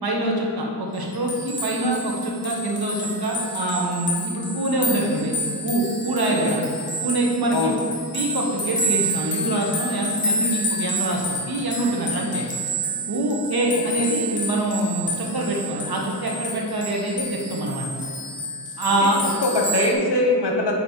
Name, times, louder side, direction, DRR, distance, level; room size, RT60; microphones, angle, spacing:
voice 1, 0.0-5.4 5.6-6.6 7.0-7.7 8.1-12.5 13.1-17.9 18.8-19.2, right 1 dB, 60° right, -1 dB, 1.2 m, -24 dB
sound 1, 1.0-19.9, right 1 dB, 30° left, 1.1 m, -29 dB
voice 2, 19.0-20.7, left 2 dB, 75° left, 0 dB, 1.2 m, -22 dB
8.5 x 3.2 x 4.3 m, 2.4 s
wide cardioid pair, 90°, 41 cm